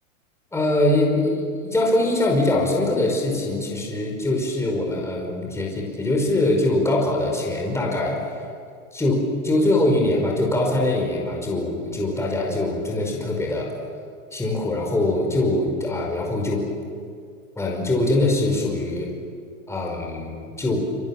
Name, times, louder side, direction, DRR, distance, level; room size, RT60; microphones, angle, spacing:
voice 1, 0.5-8.4 8.9-13.7 14.3-16.6 17.6-19.1 19.7-20.9, left 2 dB, 5° left, -1 dB, 5.3 m, -23 dB
27.0 x 26.5 x 7.4 m, 2.2 s
supercardioid pair, 145°, 41 cm